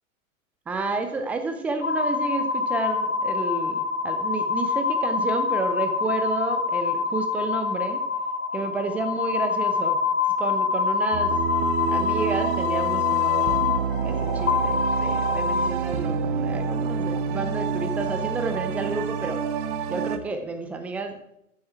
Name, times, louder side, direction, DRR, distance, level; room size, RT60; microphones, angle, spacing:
voice 1, 0.7-8.0 8.5-10.0 10.4-11.3 11.9-13.6 14.0-19.4 19.9-21.2, right 3 dB, 5° right, 7 dB, 0.4 m, -30 dB
sound 1, 1.8-15.7, left 6 dB, 75° left, 3.8 m, -25 dB
sound 2, 11.1-20.2, right 7 dB, 35° right, 1.3 m, -28 dB
14.0 x 9.7 x 4.6 m, 0.84 s
figure-of-eight pair, 110°, 42 cm